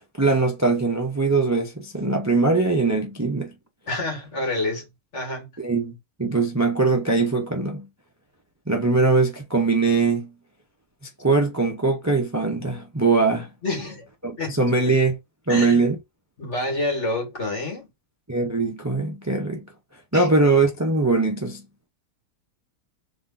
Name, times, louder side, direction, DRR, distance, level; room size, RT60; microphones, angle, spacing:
voice 1, 0.2-3.5 5.6-7.9 8.7-10.3 11.2-13.5 14.2-15.2 15.5-16.0 18.3-19.7 20.1-21.6, right 3 dB, 25° right, 0.3 m, -21 dB
voice 2, 3.9-4.8 5.1-5.5 13.6-14.1 14.4-14.6 15.5-15.8 16.4-17.9 20.1-20.3, left 2 dB, 40° left, 2.2 m, -28 dB
3.8 x 3.0 x 4.1 m
omnidirectional pair, 1.9 m